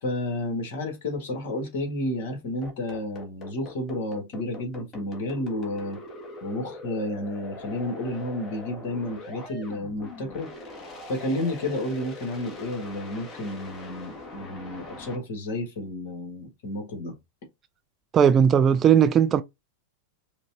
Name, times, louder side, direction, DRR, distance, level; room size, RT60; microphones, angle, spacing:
voice 1, 0.0-6.0 6.4-10.5 11.1-17.1, left 1 dB, 55° left, 1.7 m, -31 dB
sound 1, 2.6-15.2, left 2 dB, 25° left, 1.4 m, -42 dB
voice 2, 18.1-19.4, right 8 dB, 25° right, 0.3 m, -18 dB
5.0 x 2.5 x 2.8 m
figure-of-eight pair, 90°, 0 cm